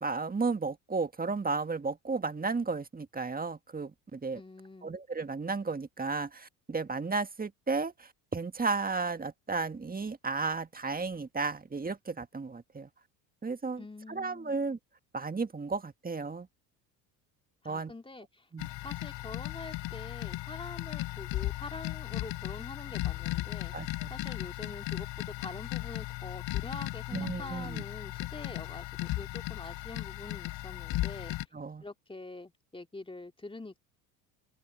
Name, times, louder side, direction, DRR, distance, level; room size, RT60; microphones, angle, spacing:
voice 1, 0.0-4.4 4.8-12.9 13.4-13.8 14.1-14.8 15.1-16.5 17.7-17.9 18.5-18.7 23.7-24.2 27.1-27.8 31.5-31.8, right 4 dB, 20° right, 1.8 m, -33 dB
voice 2, 4.3-4.9 13.8-14.6 17.6-18.5 18.8-31.4 31.8-33.8, left 2 dB, 10° left, 3.0 m, -45 dB
sound 1, 18.6-31.4, left 17 dB, 65° left, 3.8 m, -36 dB
hypercardioid pair, 70°, 48 cm